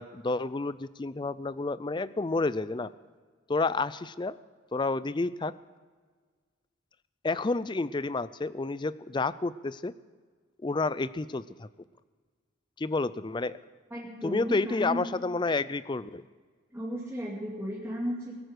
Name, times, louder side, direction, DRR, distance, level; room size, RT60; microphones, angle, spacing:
voice 1, 0.0-2.9 3.5-4.4 4.7-5.5 7.2-9.9 10.6-11.7 12.8-13.6 14.2-16.2, left 3 dB, 20° left, 17 dB, 0.4 m, -30 dB
voice 2, 13.9-15.0 16.7-18.3, equal, 10° right, -6 dB, 2.6 m, -34 dB
21.5 x 9.2 x 6.5 m, 1.5 s
head